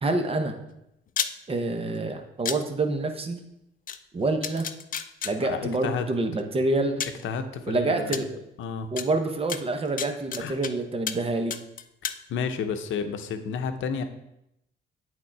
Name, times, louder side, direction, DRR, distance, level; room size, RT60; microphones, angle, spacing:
voice 1, 0.0-0.6 1.5-3.4 4.1-4.7 5.2-7.0 7.7-8.4 8.9-11.6, right 2 dB, 30° right, 6 dB, 0.9 m, -27 dB
sound 1, 1.1-1.3 2.4-2.6 3.9-4.0 4.4-5.3 6.4-6.5 7.0-7.2 8.1-8.2 9.0-9.1 9.5-10.7 11.1-11.2 11.5-12.2, left 8 dB, 45° left, 0.5 m, -30 dB
voice 2, 5.4-6.1 7.2-8.2 8.6-8.9 10.4-10.5 12.0-14.0, left 6 dB, 75° left, 8 dB, 0.7 m, -31 dB
8.6 x 3.7 x 4.6 m, 0.83 s
cardioid pair, 90°, 20 cm